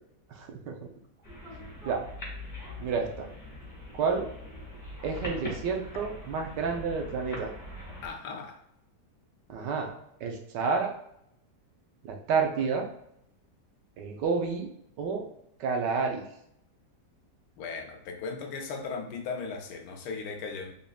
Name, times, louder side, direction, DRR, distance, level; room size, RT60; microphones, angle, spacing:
voice 1, 0.3-0.8 1.8-2.0 2.8-3.3 3.9-4.3 5.0-7.5 9.5-9.9 10.2-10.9 12.0-12.9 14.0-14.7 15.0-15.2 15.6-16.2, right 5 dB, 80° right, 2 dB, 1.3 m, -29 dB
sound 1, 1.2-8.1, left 1 dB, 10° left, 1.3 m, -42 dB
voice 2, 8.0-8.6 17.6-20.7, left 4 dB, 75° left, 4 dB, 1.2 m, -37 dB
3.9 x 3.5 x 2.2 m, 0.75 s
omnidirectional pair, 1.9 m